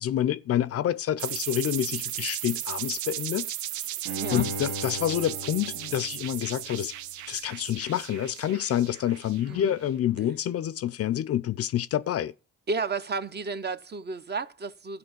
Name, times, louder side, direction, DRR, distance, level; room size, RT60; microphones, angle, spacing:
voice 1, 0.0-3.5 4.3-6.9 7.3-12.3, left 11 dB, 50° left, 0.5 m, -28 dB
sound 1, 1.2-9.7, right 12 dB, 75° right, 0.6 m, -36 dB
voice 2, 4.1-4.5 9.5-9.7 12.7-15.0, right 4 dB, 35° right, 0.8 m, -32 dB
Bowed string instrument, 4.1-7.2 7.6-7.7, right 1 dB, 55° right, 1.9 m, -38 dB
13.5 x 4.9 x 7.9 m
cardioid pair, 90°, 30 cm